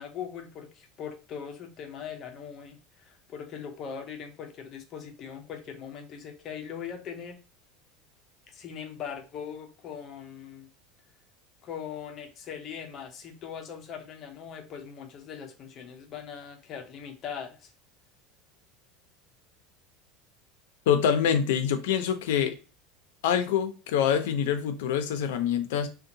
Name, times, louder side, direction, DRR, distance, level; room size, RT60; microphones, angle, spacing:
voice 1, 0.0-7.4 8.5-10.7 11.6-17.7, left 7 dB, 30° left, 0.5 m, -40 dB
voice 2, 20.9-22.6 23.2-25.9, left 8 dB, 80° left, 0.5 m, -25 dB
2.7 x 2.2 x 2.6 m
cardioid pair, 175°, 0 cm